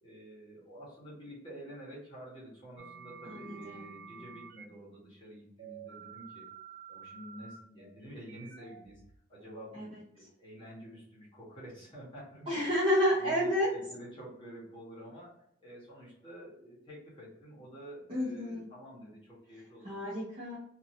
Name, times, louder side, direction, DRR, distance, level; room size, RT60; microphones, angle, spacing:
voice 1, 0.0-6.4 6.9-9.0 9.3-12.7 13.1-20.1, equal, 25° left, -8 dB, 1.3 m, -49 dB
sound 1, 2.8-4.7 5.6-9.6, right 7 dB, 55° right, 0.4 m, -50 dB
voice 2, 3.2-3.9 9.7-9.9 12.5-13.7 18.1-18.6 19.8-20.6, equal, 30° right, -10 dB, 0.9 m, -30 dB
2.8 x 2.7 x 2.7 m, 0.73 s
head